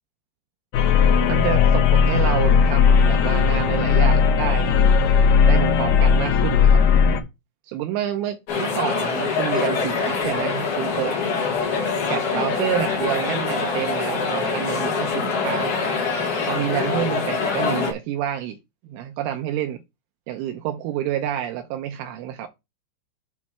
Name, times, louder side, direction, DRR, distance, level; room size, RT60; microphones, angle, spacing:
sound 1, 0.7-7.2, left 6 dB, 75° left, 2.4 m, -17 dB
voice 1, 1.3-4.7 5.5-6.8 7.6-11.2 12.0-15.8 16.5-18.6 18.9-19.8 20.3-22.5, right 11 dB, 80° right, 3.0 m, -28 dB
sound 2, 8.5-17.9, left 5 dB, 60° left, 2.3 m, -24 dB
8.3 x 3.2 x 5.8 m
omnidirectional pair, 5.9 m